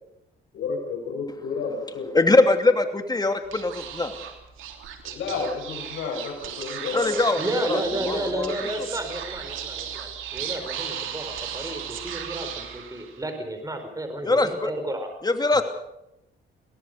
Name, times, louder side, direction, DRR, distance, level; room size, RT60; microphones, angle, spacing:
voice 1, 0.5-2.1 5.0-7.2, left 4 dB, 75° left, 0 dB, 6.3 m, -31 dB
voice 2, 2.1-4.3 6.9-8.5 14.2-14.7 15.2-15.6, left 2 dB, 20° left, 6 dB, 2.8 m, -22 dB
Speech / Whispering, 3.4-13.3, right 8 dB, 85° right, 3.2 m, -36 dB
voice 3, 7.4-15.1 15.5-15.6, right 1 dB, 15° right, 6 dB, 4.6 m, -32 dB
22.5 x 18.0 x 6.7 m, 0.86 s
cardioid pair, 90°, 20 cm